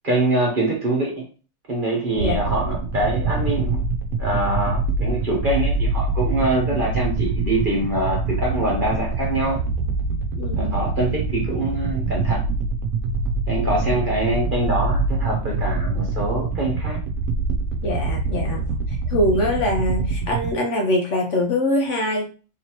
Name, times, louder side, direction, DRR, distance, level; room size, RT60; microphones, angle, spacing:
voice 1, 0.0-1.2 1.7-3.8 4.2-9.6 10.6-12.4 13.5-17.0, right 2 dB, 35° right, -2 dB, 1.3 m, -24 dB
sound 1, 2.2-20.5, right 3 dB, 70° right, 1.0 m, -24 dB
voice 2, 10.3-10.8 13.9-14.0 17.8-18.6 18.9-22.3, left 1 dB, 60° left, 1 dB, 1.0 m, -23 dB
3.9 x 2.9 x 3.0 m, 0.36 s
omnidirectional pair, 1.6 m